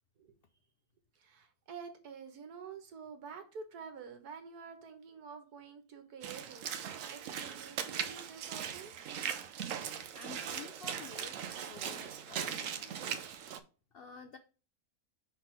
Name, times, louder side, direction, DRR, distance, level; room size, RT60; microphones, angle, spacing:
voice 1, 1.1-8.9, right 6 dB, 80° right, 7 dB, 1.7 m, -49 dB
Walk footsteps / Splash splatter, 6.2-13.6, right 8 dB, 65° right, 0.9 m, -40 dB
voice 2, 10.2-13.2 13.9-14.4, left 6 dB, 75° left, 8 dB, 0.5 m, -51 dB
5.9 x 4.0 x 4.5 m, 0.35 s
omnidirectional pair, 1.6 m